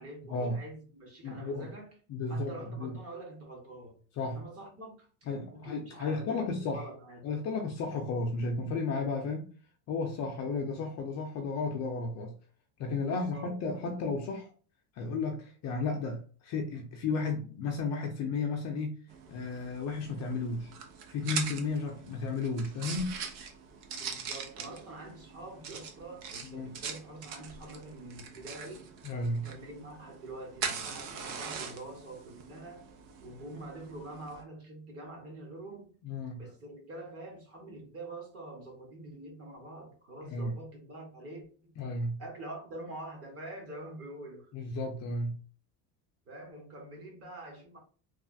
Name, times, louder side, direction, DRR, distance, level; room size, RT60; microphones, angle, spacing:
voice 1, 0.0-1.9 2.3-4.0 4.3-5.1 5.5-7.3 13.0-14.1 24.0-28.9 29.3-32.8 33.2-35.9 36.4-41.7 42.2-44.5 46.3-47.8, right 2 dB, 30° right, 1.1 m, -46 dB
voice 2, 1.2-1.7 2.1-2.9 4.2-4.4 5.3-6.8 7.2-9.5 9.9-12.3 12.8-14.5 14.9-19.0 19.3-20.7 21.1-23.2 26.4-26.7 29.0-29.5 36.0-36.4 40.2-40.5 41.8-42.2 44.5-45.3, left 3 dB, 35° left, 0.5 m, -33 dB
sound 1, 19.1-34.4, right 6 dB, 70° right, 0.8 m, -42 dB
3.2 x 2.3 x 2.6 m
supercardioid pair, 135°, 48 cm